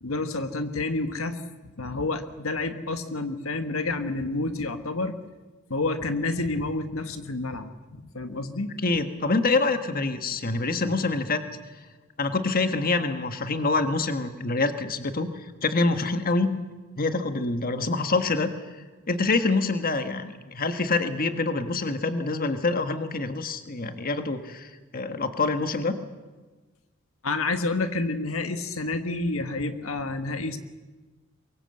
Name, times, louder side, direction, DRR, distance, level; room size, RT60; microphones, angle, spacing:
voice 1, 0.0-1.4 1.8-5.1 5.7-8.7 27.2-30.6, left 2 dB, 80° left, 8 dB, 1.5 m, -29 dB
voice 2, 8.8-11.4 12.2-16.5 17.0-18.7 19.1-26.0, left 3 dB, 45° left, 8 dB, 1.4 m, -26 dB
23.5 x 21.5 x 7.8 m, 1.3 s
head